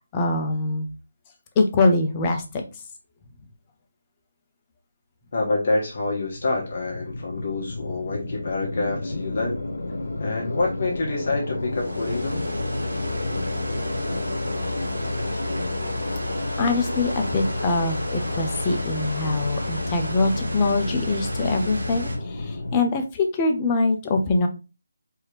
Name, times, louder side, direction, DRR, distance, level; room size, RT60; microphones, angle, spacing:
voice 1, 0.1-0.8 1.6-2.4 16.6-22.1 22.4-24.5, left 3 dB, 20° left, 3 dB, 0.7 m, -23 dB
voice 2, 5.3-9.6 10.2-12.4, left 3 dB, 45° left, -2 dB, 1.1 m, -27 dB
sound 1, 5.8-22.8, left 2 dB, 75° left, 1.0 m, -31 dB
sound 2, 11.7-22.2, left 1 dB, 80° right, 1.6 m, -32 dB
4.6 x 2.8 x 3.2 m, 0.30 s
figure-of-eight pair, 165°, 0 cm